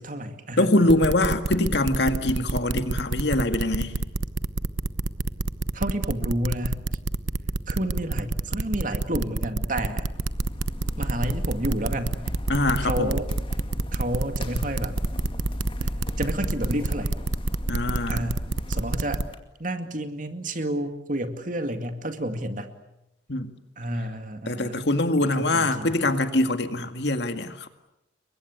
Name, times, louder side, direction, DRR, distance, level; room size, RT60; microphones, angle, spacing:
voice 1, 0.0-0.9 5.7-6.8 7.7-10.1 11.0-12.3 12.8-13.3 13.9-14.9 16.2-17.1 18.1-18.4 18.7-19.2 19.6-22.7 23.8-24.8 25.2-26.0, right 1 dB, 45° right, 7 dB, 2.3 m, -30 dB
voice 2, 0.6-3.9 12.5-13.2 17.7-18.3 23.3-23.5 24.5-27.7, left 1 dB, 60° left, 8 dB, 2.1 m, -23 dB
sound 1, 0.9-19.2, right 2 dB, 90° right, 1.0 m, -27 dB
sound 2, 10.0-19.4, equal, 30° left, 2.2 m, -35 dB
29.0 x 23.5 x 8.2 m, 0.87 s
head